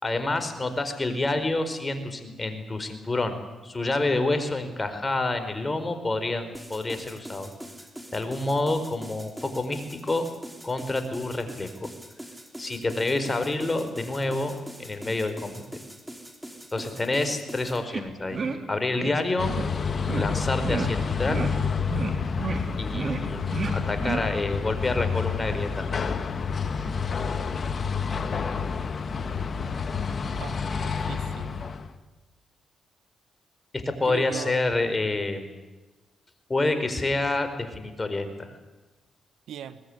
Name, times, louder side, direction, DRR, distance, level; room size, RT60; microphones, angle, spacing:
voice 1, 0.0-3.4 3.6-7.5 8.1-10.3 10.6-11.9 12.6-15.6 16.7-18.4 18.7-19.5 20.1-21.4 22.8-26.0 33.7-35.6 36.5-38.5, left 2 dB, 25° left, 9 dB, 4.6 m, -28 dB
sound 1, 6.5-17.8, right 1 dB, 10° right, 4.6 m, -43 dB
sound 2, 17.9-18.0 18.3-18.6 19.0-19.1 19.5-19.6 20.1-20.3 20.6-20.9 21.3-21.5 21.8-22.1 22.4-22.6 22.9-23.2 23.5-23.7 24.0-24.2, right 4 dB, 50° right, 3.6 m, -29 dB
sound 3, 19.4-31.9, left 5 dB, 50° left, 1.9 m, -29 dB
voice 2, 30.4-31.6 34.0-34.6 39.5-39.8, right 9 dB, 80° right, 13 dB, 1.5 m, -39 dB
23.0 x 19.5 x 9.9 m, 1.2 s
supercardioid pair, 65°, 0 cm